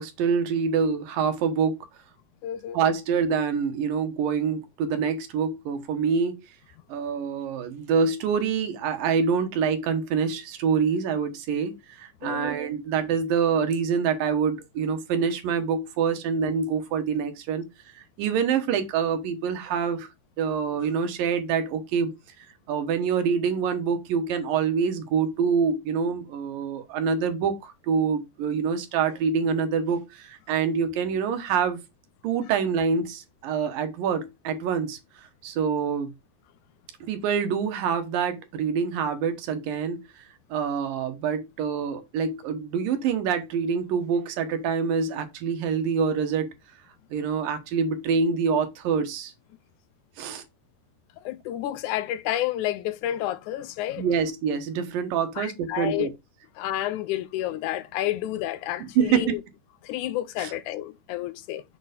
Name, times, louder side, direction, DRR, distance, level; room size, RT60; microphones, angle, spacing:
voice 1, 0.0-1.8 2.7-6.4 6.9-17.7 17.9-20.1 20.4-22.1 22.7-31.8 32.2-35.0 35.4-36.1 37.0-46.5 47.1-49.3 50.2-50.4 54.0-56.1 58.8-59.4 60.4-60.5, right 6 dB, 80° right, 2.9 m, -26 dB
voice 2, 2.4-2.8 12.2-12.5 51.3-54.0 55.4-56.1 56.6-59.4 59.8-61.6, left 13 dB, 80° left, 1.8 m, -30 dB
7.1 x 4.6 x 5.1 m
omnidirectional pair, 3.9 m